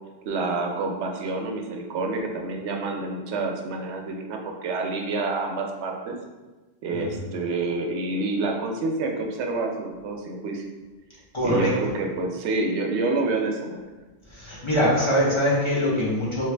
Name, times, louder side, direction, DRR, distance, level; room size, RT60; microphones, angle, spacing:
voice 1, 0.3-6.1 6.8-10.6 11.4-13.8, right 3 dB, 80° right, 2 dB, 0.9 m, -28 dB
voice 2, 6.9-7.3 11.3-11.7 14.3-16.5, equal, 30° left, -7 dB, 0.9 m, -23 dB
3.4 x 3.3 x 3.3 m, 1.2 s
omnidirectional pair, 1.1 m